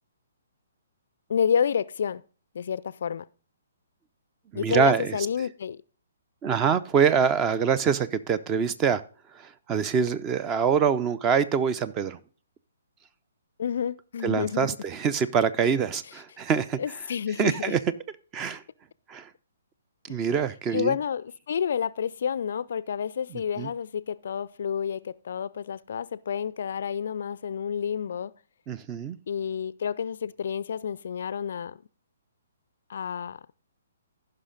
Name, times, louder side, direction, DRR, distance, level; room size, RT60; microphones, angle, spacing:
voice 1, 1.3-2.2 2.5-3.3 4.5-5.8 13.6-14.8 16.8-17.8 20.7-28.3 29.3-31.8 32.9-33.4, left 7 dB, 55° left, 0.4 m, -29 dB
voice 2, 4.5-5.2 6.4-9.0 9.7-12.2 14.2-16.8 17.4-17.8 18.3-18.6 19.1-19.3 20.1-21.0 23.3-23.7 28.7-29.2, right 6 dB, 20° right, 0.6 m, -25 dB
15.0 x 5.7 x 3.9 m
figure-of-eight pair, 125°, 0 cm